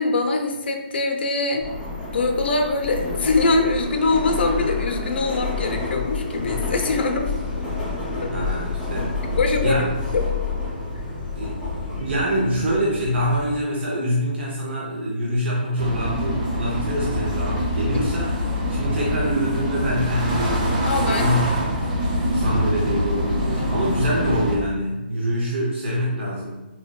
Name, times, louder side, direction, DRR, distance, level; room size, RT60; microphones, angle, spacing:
voice 1, 0.0-1.7 2.1-7.3 8.2-8.3 9.2-9.8 10.1-10.3 20.9-21.3 23.6-23.7, left 3 dB, 70° left, 3 dB, 0.5 m, -23 dB
Subway metro underground, 1.6-13.6, left 3 dB, 15° left, 0.7 m, -29 dB
voice 2, 8.3-9.2 9.6-9.9 11.3-18.4 18.7-21.6 22.3-26.6, equal, 85° right, -3 dB, 0.6 m, -25 dB
sound 1, 15.8-24.6, equal, 45° right, 0.6 m, -24 dB
3.8 x 2.1 x 2.2 m, 1.1 s
hypercardioid pair, 165°, 6 cm